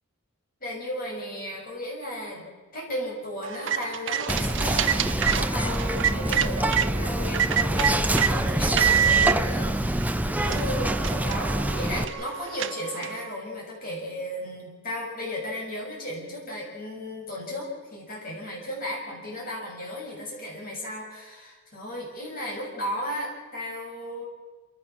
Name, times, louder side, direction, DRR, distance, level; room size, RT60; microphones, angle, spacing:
voice 1, 0.6-2.5 2.7-24.2, left 1 dB, 40° left, -2 dB, 6.6 m, -35 dB
sound 1, 3.4-6.9 7.3-8.3 8.8-9.4 10.0-10.1 10.4-13.3, right 8 dB, 60° right, 0.6 m, -26 dB
Whispering, 4.3-12.0, right 1 dB, 5° right, 0.6 m, -26 dB
27.0 x 15.0 x 7.3 m, 1.3 s
head